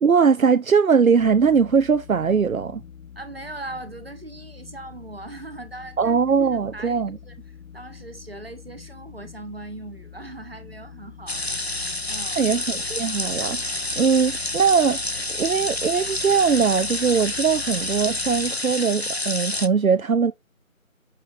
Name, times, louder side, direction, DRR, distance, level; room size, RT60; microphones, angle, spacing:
voice 1, 0.0-2.8 6.0-7.2 12.4-20.3, right 6 dB, 75° right, 0.7 m, -21 dB
sound 1, 1.2-18.5, left 7 dB, 85° left, 0.9 m, -45 dB
voice 2, 3.1-6.2 6.7-7.4 7.7-11.4 12.1-12.4, right 2 dB, 45° right, 1.4 m, -39 dB
sound 2, 11.3-19.7, left 2 dB, 50° left, 0.5 m, -28 dB
6.9 x 6.8 x 2.5 m
figure-of-eight pair, 175°, 42 cm